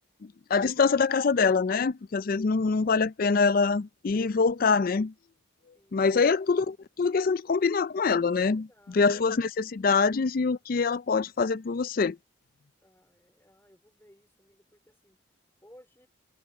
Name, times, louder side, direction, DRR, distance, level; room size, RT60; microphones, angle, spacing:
voice 1, 0.2-5.1 5.9-12.2, left 4 dB, 45° left, 0.4 m, -25 dB
voice 2, 5.7-6.4 8.4-9.0 12.8-15.2 15.6-16.1, equal, 10° left, 4.0 m, -59 dB
head